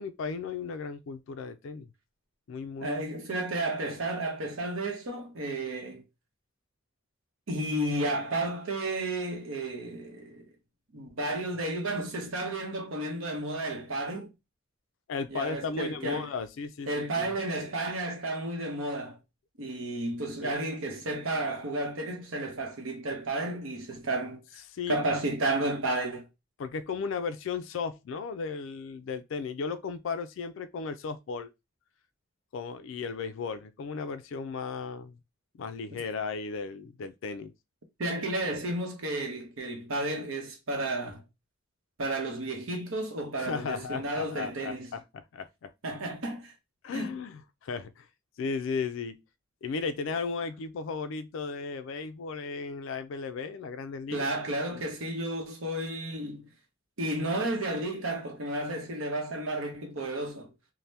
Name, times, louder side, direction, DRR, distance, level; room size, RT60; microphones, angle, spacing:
voice 1, 0.0-1.9 2.5-3.0 15.1-17.4 20.4-20.5 24.7-25.0 26.6-31.5 32.5-35.2 35.5-37.5 43.4-45.7 46.8-48.1 48.4-49.2 49.6-54.3 54.7-54.8, left 5 dB, 65° left, 0.3 m, -35 dB
voice 2, 2.8-6.0 7.5-10.5 10.9-14.3 15.3-16.3 16.9-19.2 19.6-24.4 24.9-26.3 35.9-36.0 38.0-41.2 42.0-44.9 45.8-46.5 46.9-47.1 54.1-56.5 57.0-60.5, right 2 dB, 75° right, 0.8 m, -32 dB
2.7 x 2.1 x 3.2 m
head